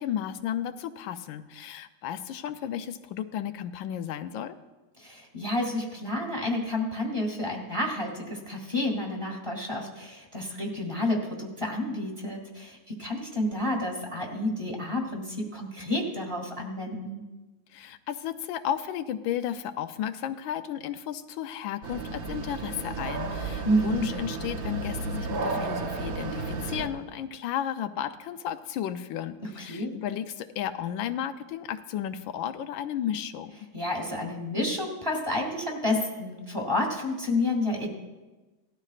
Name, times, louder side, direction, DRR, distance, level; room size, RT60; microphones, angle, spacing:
voice 1, 0.0-4.5 17.7-33.5, left 10 dB, 85° left, 10 dB, 1.4 m, -33 dB
voice 2, 5.0-17.2 23.6-24.1 29.4-29.9 33.7-38.0, left 1 dB, 15° right, 0 dB, 1.9 m, -30 dB
sound 1, 21.8-26.9, right 3 dB, 55° right, 1.3 m, -33 dB
18.0 x 12.5 x 2.5 m, 1.2 s
omnidirectional pair, 2.1 m